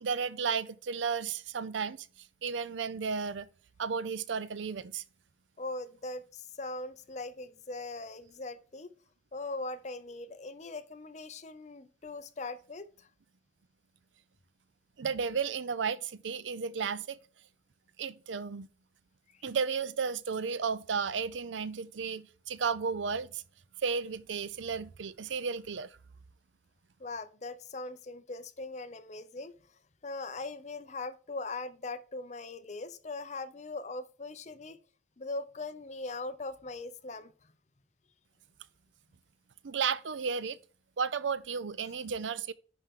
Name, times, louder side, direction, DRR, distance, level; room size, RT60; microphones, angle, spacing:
voice 1, 0.0-2.1 2.4-3.5 3.8-5.0 15.0-17.2 18.0-18.7 19.4-23.4 23.8-25.9 39.6-40.6 41.0-42.5, right 5 dB, 85° right, 0.5 m, -33 dB
voice 2, 5.6-8.9 9.3-13.1 27.0-29.5 30.0-34.8 35.2-37.3, left 3 dB, 40° left, 0.7 m, -40 dB
10.5 x 4.4 x 3.7 m
head